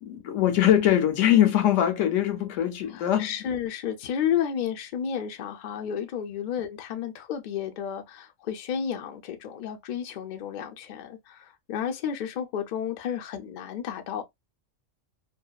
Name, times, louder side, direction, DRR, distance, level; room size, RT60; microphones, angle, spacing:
voice 1, 0.0-3.3, left 11 dB, 80° left, 0.9 m, -22 dB
voice 2, 2.9-14.2, left 8 dB, 60° left, 0.5 m, -32 dB
2.6 x 2.1 x 2.2 m
omnidirectional pair, 1.3 m